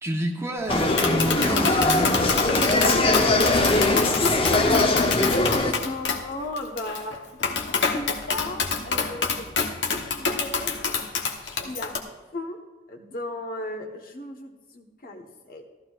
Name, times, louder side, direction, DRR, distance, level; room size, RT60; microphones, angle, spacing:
voice 1, 0.0-2.6, equal, 15° right, 2 dB, 0.9 m, -29 dB
Tap, 0.7-12.0, left 5 dB, 80° left, 1.1 m, -27 dB
sound 1, 0.7-5.7, left 2 dB, 30° left, 0.8 m, -21 dB
voice 2, 3.5-7.2 7.9-9.5 9.9-10.7 11.4-11.9 12.3-12.6 12.9-15.7, left 1 dB, 50° left, 2 dB, 1.2 m, -35 dB
14.5 x 13.5 x 2.5 m, 1.3 s
head